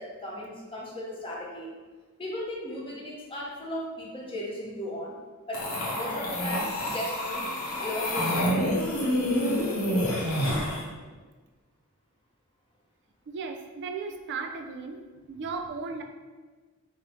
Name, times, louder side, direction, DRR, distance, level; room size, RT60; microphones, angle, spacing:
voice 1, 0.0-1.7 2.2-5.2 5.5-7.5 7.8-9.1, left 1 dB, 25° left, -3 dB, 0.6 m, -36 dB
sound 1, 5.5-10.8, equal, 70° left, 0.7 m, -28 dB
voice 2, 13.3-15.0 15.3-16.0, right 4 dB, 55° right, 4 dB, 0.4 m, -35 dB
3.1 x 2.0 x 4.0 m, 1.3 s
head